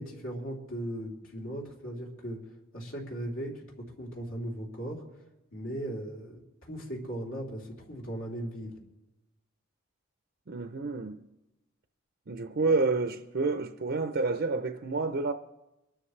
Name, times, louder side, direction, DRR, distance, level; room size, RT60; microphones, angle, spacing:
voice 1, 0.0-5.2 5.5-8.8, right 1 dB, 70° left, 3.3 m, -38 dB
voice 2, 10.5-11.2 12.3-15.3, right 3 dB, 50° right, 0.6 m, -29 dB
24.0 x 12.5 x 3.2 m
head